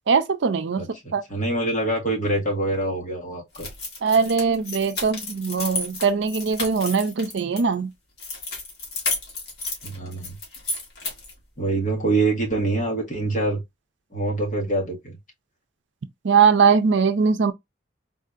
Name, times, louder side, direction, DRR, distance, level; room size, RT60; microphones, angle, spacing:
voice 1, 0.1-0.8 1.1-1.2 4.0-7.9 16.2-17.5, right 5 dB, 75° right, 0.5 m, -20 dB
voice 2, 0.8-3.7 9.8-10.3 11.6-13.6 14.1-15.2, right 2 dB, 45° left, 1.5 m, -25 dB
sound 1, 3.5-7.6 8.2-11.4, left 3 dB, 60° left, 1.6 m, -32 dB
4.0 x 2.7 x 2.4 m
head